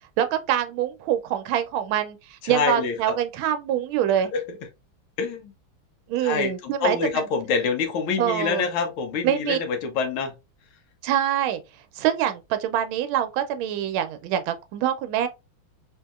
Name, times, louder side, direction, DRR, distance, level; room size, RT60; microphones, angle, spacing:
voice 1, 0.2-4.3 6.1-7.3 8.2-8.6 9.2-9.6 11.0-11.6 12.0-15.3, right 11 dB, 85° right, 1.4 m, -25 dB
voice 2, 2.4-3.2 4.3-4.4 5.2-5.5 6.2-6.5 6.8-10.3, left 5 dB, 85° left, 1.7 m, -26 dB
4.0 x 2.7 x 2.3 m
omnidirectional pair, 2.2 m